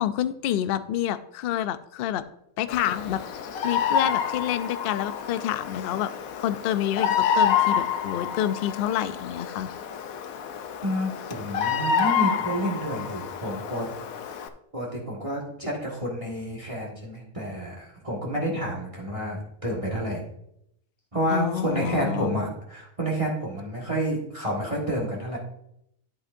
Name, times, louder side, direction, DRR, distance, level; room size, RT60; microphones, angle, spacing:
voice 1, 0.0-2.2 2.6-3.2 3.6-6.1 6.4-9.7 21.3-22.3, left 11 dB, 65° left, 12 dB, 0.6 m, -28 dB
Bird vocalization bird call bird song, 2.7-14.5, left 7 dB, 85° left, 1.1 m, -28 dB
voice 2, 10.8-13.9 14.7-20.2 21.1-25.4, equal, 25° right, -2 dB, 1.6 m, -29 dB
10.5 x 8.0 x 2.6 m, 0.76 s
omnidirectional pair, 1.4 m